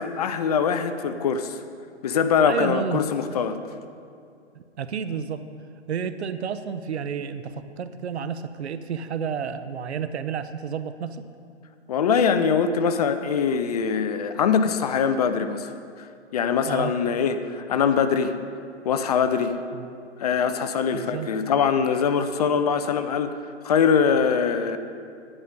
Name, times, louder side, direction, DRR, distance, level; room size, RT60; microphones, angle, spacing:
voice 1, 0.0-1.6 2.0-3.6 11.9-15.7 16.0-16.1 16.3-18.4 18.8-19.6 20.2-23.3 23.6-24.8, left 6 dB, 35° left, 10 dB, 0.5 m, -23 dB
voice 2, 2.4-3.0 4.5-5.4 5.9-11.2 16.7-16.9 19.7-19.9 20.9-21.3, right 7 dB, 70° right, 11 dB, 0.8 m, -31 dB
10.5 x 9.9 x 5.2 m, 2.4 s
hypercardioid pair, 140°, 35 cm